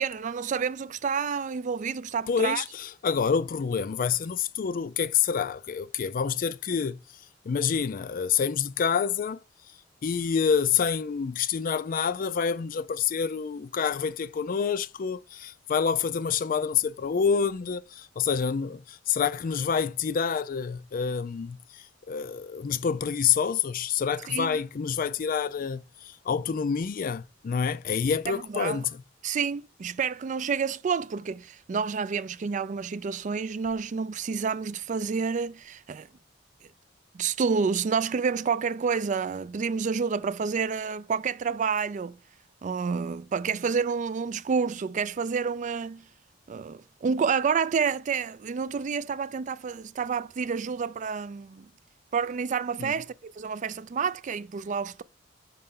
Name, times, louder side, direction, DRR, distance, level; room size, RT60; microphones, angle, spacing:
voice 1, 0.0-2.6 24.3-24.6 28.3-28.8 29.2-36.1 37.1-42.2 42.6-46.0 46.5-51.7 52.1-55.0, right 6 dB, 40° right, 0.4 m, -29 dB
voice 2, 2.3-7.0 7.5-9.4 10.0-29.0 52.8-52.9, left 6 dB, 50° left, 0.4 m, -27 dB
5.5 x 5.4 x 3.7 m
head